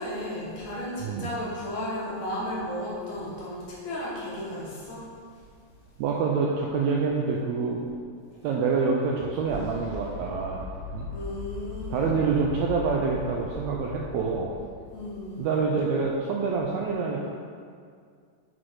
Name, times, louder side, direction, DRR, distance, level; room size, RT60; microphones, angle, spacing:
voice 1, 0.0-5.0 11.1-12.2 14.9-15.5, left 1 dB, 65° left, -6 dB, 2.2 m, -34 dB
voice 2, 6.0-7.8 8.4-10.6 10.9-11.1 11.9-14.5 15.4-17.3, right 5 dB, 85° right, -2 dB, 1.6 m, -26 dB
sound 1, 7.9-15.4, left 3 dB, 45° right, 2.3 m, -40 dB
6.0 x 4.0 x 4.8 m, 2.1 s
omnidirectional pair, 3.7 m